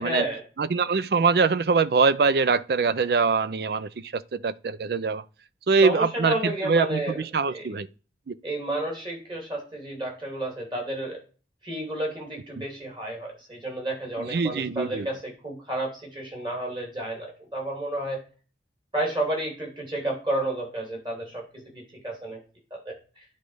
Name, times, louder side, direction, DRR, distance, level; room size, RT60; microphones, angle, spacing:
voice 1, 0.0-0.4 5.8-7.2 7.5-7.7 8.4-11.2 11.6-18.2 18.9-22.4 22.7-23.2, right 1 dB, 25° right, 2.8 m, -31 dB
voice 2, 0.6-5.2 5.7-7.9 8.3-8.4 12.6-12.7 14.2-15.1, right 4 dB, 60° right, 0.4 m, -23 dB
9.9 x 4.0 x 4.9 m
head